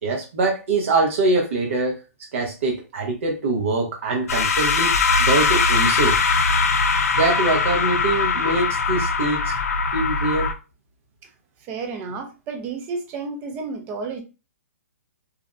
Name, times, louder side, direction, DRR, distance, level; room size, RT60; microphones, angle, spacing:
voice 1, 0.0-2.0 2.3-6.2 7.1-9.5 9.9-10.5, right 2 dB, 55° right, 0 dB, 0.8 m, -23 dB
sound 1, 4.3-10.5, left 4 dB, 65° left, 0.4 m, -21 dB
voice 2, 11.7-14.2, right 4 dB, 20° right, 5 dB, 0.4 m, -31 dB
2.5 x 2.0 x 2.5 m, 0.30 s
hypercardioid pair, 155°, 8 cm